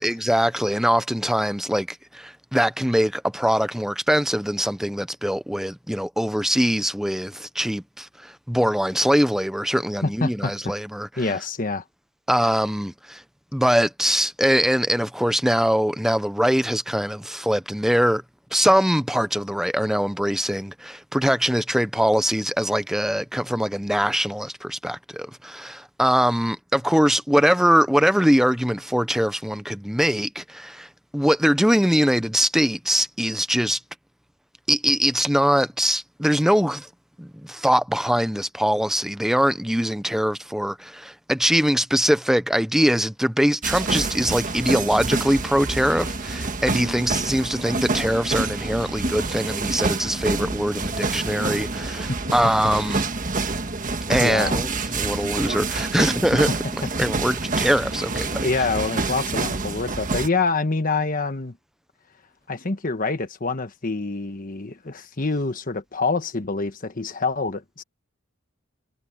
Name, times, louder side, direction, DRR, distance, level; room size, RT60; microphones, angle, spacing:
voice 1, 0.0-11.2 12.3-13.2 13.5-18.2 18.5-33.8 34.7-36.9 37.2-53.0 54.1-56.5 57.0-58.4, equal, ahead, 0.7 m, -22 dB
voice 2, 10.0-10.7 11.2-11.8 54.2-54.6 58.4-61.6 62.5-67.8, left 3 dB, 40° left, 1.3 m, -26 dB
sound 1, 43.6-60.3, right 3 dB, 40° right, 1.5 m, -27 dB
head